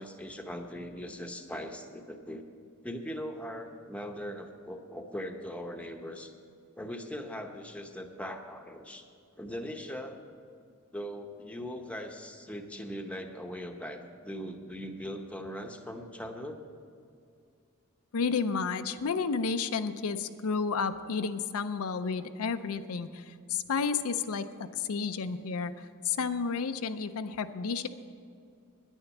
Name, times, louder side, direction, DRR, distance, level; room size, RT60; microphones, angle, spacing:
voice 1, 0.0-2.4 2.8-6.3 6.8-9.0 9.4-10.2 10.9-16.6, equal, 5° left, 4 dB, 0.8 m, -40 dB
voice 2, 18.1-25.7 26.0-27.9, left 5 dB, 75° left, 9 dB, 0.5 m, -31 dB
10.0 x 9.9 x 7.1 m, 2.4 s
head